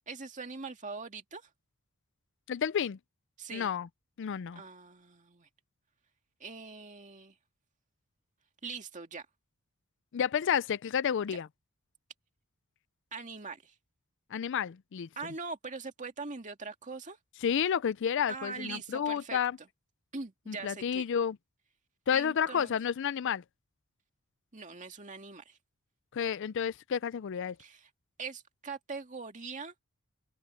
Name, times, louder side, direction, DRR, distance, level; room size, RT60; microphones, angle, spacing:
voice 1, 0.1-1.5 3.4-3.7 4.5-5.5 6.4-7.3 8.6-9.3 13.1-13.7 15.2-17.2 18.3-19.4 20.1-21.1 22.1-22.7 24.5-25.6 27.6-27.9 28.2-29.7, right 4 dB, 35° right, 2.1 m, -42 dB
voice 2, 2.5-3.0 3.5-3.9 4.2-4.6 10.1-11.5 14.3-15.1 17.4-19.6 20.5-21.4 22.1-23.4 26.1-27.6, left 8 dB, 60° left, 0.4 m, -30 dB
head